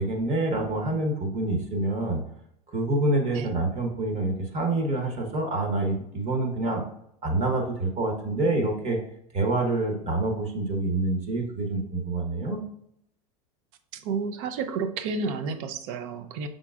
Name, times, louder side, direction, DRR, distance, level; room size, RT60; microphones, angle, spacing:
voice 1, 0.0-2.2 2.7-6.8 7.2-9.0 9.3-12.6, right 2 dB, 35° right, 2 dB, 1.2 m, -27 dB
voice 2, 13.9-16.5, right 4 dB, 60° right, 9 dB, 0.6 m, -31 dB
5.8 x 3.8 x 2.4 m, 0.74 s
hypercardioid pair, 100°, 19 cm